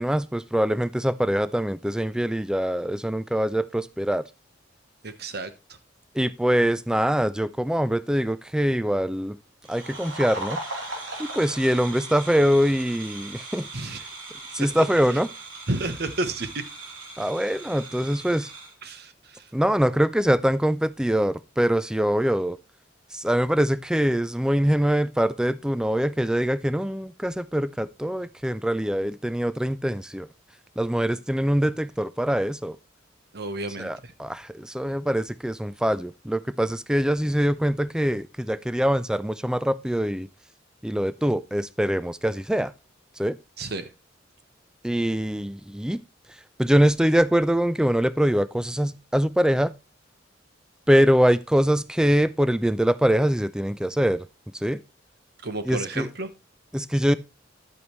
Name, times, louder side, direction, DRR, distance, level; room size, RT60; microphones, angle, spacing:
voice 1, 0.0-4.2 6.2-9.4 9.7-10.6 11.2-13.7 14.5-15.3 17.2-18.5 19.5-22.6 23.1-30.3 30.8-32.8 33.8-40.3 40.8-42.7 43.2-43.4 44.8-46.0 46.6-49.7 50.9-54.3 54.6-54.8 55.6-56.1 56.7-57.1, equal, 5° right, 0.4 m, -23 dB
voice 2, 5.0-5.5 13.7-14.0 14.6-14.9 15.1-15.2 15.7-16.6 18.8-19.4 33.3-34.1 43.6-43.9 55.4-56.3, right 2 dB, 55° right, 1.1 m, -31 dB
sound 1, 9.6-18.7, right 2 dB, 85° right, 3.0 m, -38 dB
11.0 x 8.5 x 3.1 m
head